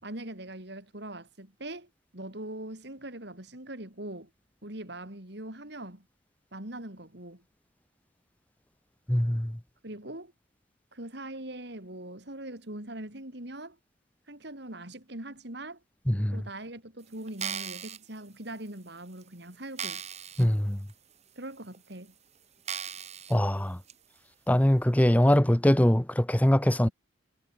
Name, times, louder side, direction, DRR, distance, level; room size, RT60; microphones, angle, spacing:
voice 1, 0.0-4.3 4.6-6.1 6.5-7.4 9.8-10.3 10.9-13.8 14.3-15.8 16.3-20.0 21.4-22.1 26.8-26.9, right 1 dB, 60° right, 4.3 m, -41 dB
voice 2, 9.1-9.6 16.1-16.4 20.4-20.8 23.3-23.8 24.5-26.9, equal, 10° left, 0.7 m, -23 dB
sound 1, 17.3-18.0 18.7-18.8 19.2-19.3 19.8-20.5 20.9-21.0 21.7-21.8 22.7-23.3 23.9-24.0, right 8 dB, 35° right, 2.6 m, -37 dB
head